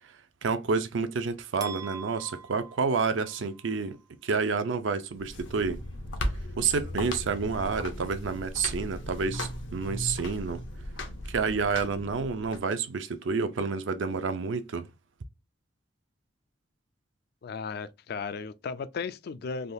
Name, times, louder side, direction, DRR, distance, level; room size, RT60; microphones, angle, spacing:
voice 1, 0.4-4.0 4.2-5.8 6.6-10.6 11.3-14.9, right 5 dB, 75° right, 0.5 m, -29 dB
sound 1, 1.6-3.7, right 6 dB, 20° right, 0.3 m, -43 dB
sound 2, 5.1-12.6, left 1 dB, 75° left, 0.7 m, -37 dB
voice 2, 17.4-19.7, left 5 dB, 55° left, 0.3 m, -35 dB
3.5 x 2.3 x 2.6 m
head